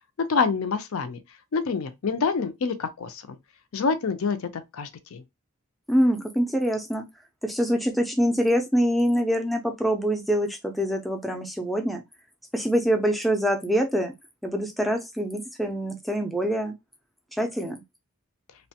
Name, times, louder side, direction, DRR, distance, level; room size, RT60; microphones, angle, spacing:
voice 1, 0.2-1.2 1.5-3.4 3.7-5.2, left 5 dB, 70° left, 0.5 m, -27 dB
voice 2, 5.9-7.1 7.4-12.0 12.5-14.1 14.4-16.7 17.3-17.8, equal, ahead, 0.4 m, -25 dB
2.9 x 2.1 x 2.8 m
head